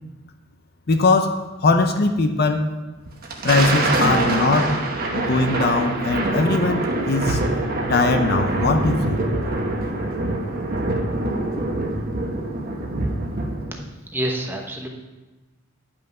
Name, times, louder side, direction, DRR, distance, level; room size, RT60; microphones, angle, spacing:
voice 1, 0.9-2.7 3.4-4.8 5.1-7.4 7.9-9.2, left 3 dB, 45° left, 6 dB, 0.6 m, -20 dB
Thunder, 3.1-13.8, right 2 dB, 45° right, 1.1 m, -24 dB
voice 2, 14.1-14.9, right 1 dB, 10° right, 1 dB, 1.0 m, -27 dB
10.0 x 5.8 x 5.4 m, 1.2 s
head